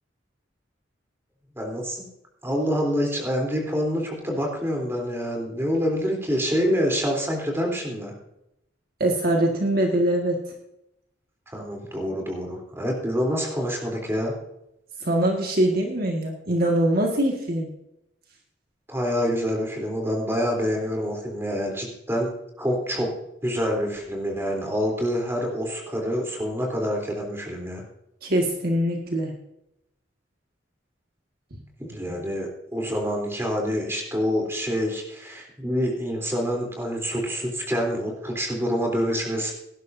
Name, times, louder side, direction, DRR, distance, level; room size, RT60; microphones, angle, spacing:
voice 1, 1.6-2.1 2.4-8.1 11.5-14.3 18.9-22.3 22.6-23.1 23.4-27.8 31.9-39.5, equal, 15° right, 0 dB, 3.5 m, -26 dB
voice 2, 9.0-10.4 15.0-17.7 28.2-29.3 32.0-32.1, right 1 dB, 50° right, 1 dB, 1.8 m, -23 dB
18.0 x 11.5 x 2.7 m, 0.82 s
head